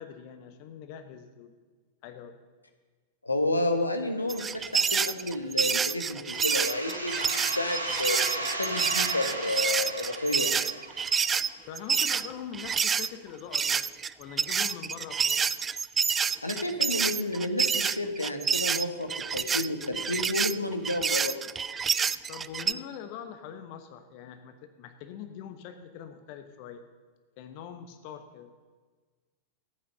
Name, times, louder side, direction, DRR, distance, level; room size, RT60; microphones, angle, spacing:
voice 1, 0.0-1.5 2.0-2.4 11.7-13.8 14.2-15.5 22.3-26.8 27.4-28.5, left 8 dB, 45° left, 7 dB, 1.0 m, -43 dB
voice 2, 3.2-10.7 16.4-21.4, left 2 dB, 85° left, 5 dB, 1.3 m, -31 dB
sound 1, 4.3-13.1 13.5-22.7, right 6 dB, 20° right, 0.3 m, -28 dB
sound 2, 6.3-11.8, right 1 dB, 85° right, 1.8 m, -36 dB
14.5 x 8.7 x 6.7 m, 1.4 s
figure-of-eight pair, 90°, 0 cm